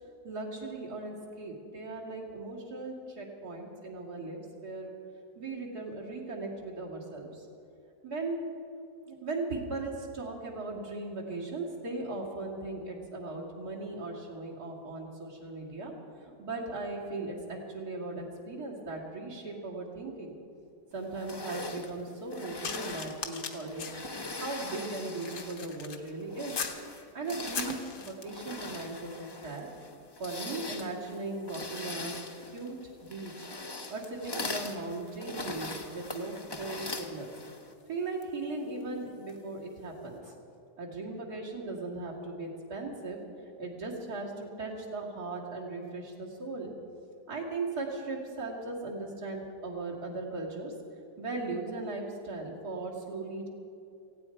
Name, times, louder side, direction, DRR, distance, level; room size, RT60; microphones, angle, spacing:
voice 1, 0.2-1.1 1.4-5.0 5.4-7.5 8.0-8.4 9.1-15.9 16.2-20.3 20.9-23.9 24.4-26.5 27.1-29.7 30.2-32.2 32.5-32.7 33.0-33.5 33.9-37.3 37.9-40.2 40.8-43.2 43.6-46.7 47.3-50.7 51.2-53.5, right 3 dB, 75° right, -4 dB, 3.1 m, -38 dB
sound 1, 21.2-25.7 26.2-37.7, left 2 dB, 25° left, 0.5 m, -41 dB
sound 2, 22.6-26.9 27.3-28.5 29.3-29.5 29.8-39.5 40.2-40.4, left 6 dB, 65° left, 1.5 m, -44 dB
18.0 x 16.0 x 4.7 m, 2.6 s
omnidirectional pair, 1.7 m